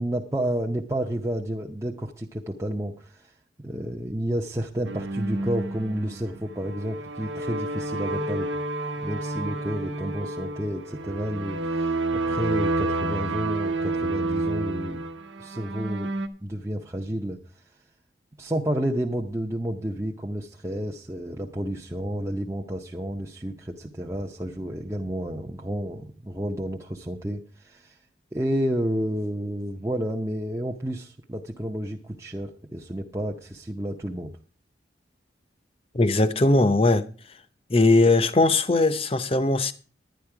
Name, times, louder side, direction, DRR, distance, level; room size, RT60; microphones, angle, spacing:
voice 1, 0.0-3.3 3.6-8.5 9.0-15.0 15.4-16.1 16.4-17.8 18.4-28.0 28.3-34.3, right 1 dB, 15° right, 0.7 m, -30 dB
sound 1, 4.8-16.3, right 2 dB, 90° right, 1.2 m, -30 dB
voice 2, 35.9-37.1 37.7-39.7, left 2 dB, 30° left, 0.7 m, -20 dB
10.5 x 10.5 x 4.7 m
head